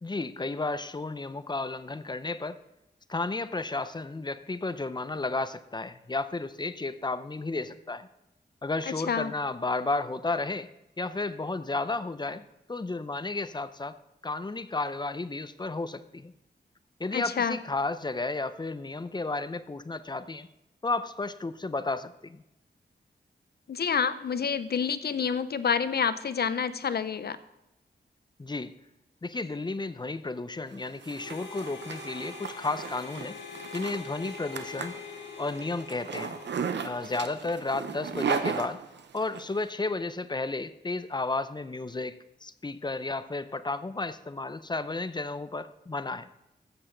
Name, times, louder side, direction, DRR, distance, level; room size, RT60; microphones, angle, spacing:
voice 1, 0.0-2.6 3.1-8.1 8.6-10.7 11.0-14.0 14.2-16.3 17.0-20.5 20.8-22.4 28.4-28.7 29.2-33.4 33.7-34.9 35.4-36.4 36.8-38.8 39.1-46.3, left 3 dB, 25° left, 13 dB, 0.6 m, -33 dB
voice 2, 17.1-17.6 23.7-27.4, left 6 dB, 65° left, 13 dB, 0.6 m, -28 dB
Zipper (clothing), 30.7-39.4, right 6 dB, 80° right, 0.8 m, -36 dB
Harmonica, 31.2-37.5, left 5 dB, 90° left, 1.6 m, -44 dB
14.5 x 7.9 x 3.9 m, 0.89 s
wide cardioid pair, 80°, 18 cm